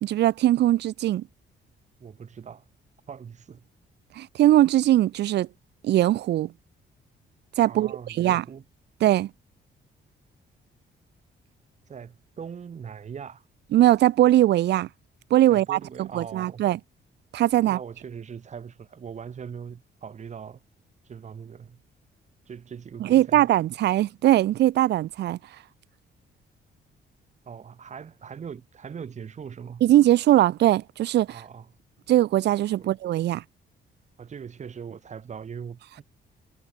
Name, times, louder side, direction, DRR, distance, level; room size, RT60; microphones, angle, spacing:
voice 1, 0.0-1.2 4.2-5.5 5.8-6.5 7.6-8.4 9.0-9.3 13.7-14.9 15.3-16.8 17.3-17.8 23.0-25.4 29.8-31.3 32.1-33.4, right 13 dB, 65° right, 0.6 m, -21 dB
voice 2, 2.0-2.6 3.1-3.7 7.7-8.6 11.9-13.4 15.5-16.6 17.5-20.6 21.0-21.8 22.5-23.5 27.4-29.8 31.3-31.7 32.8-33.0 34.2-36.0, right 7 dB, 40° right, 7.0 m, -40 dB
cardioid pair, 165°, 19 cm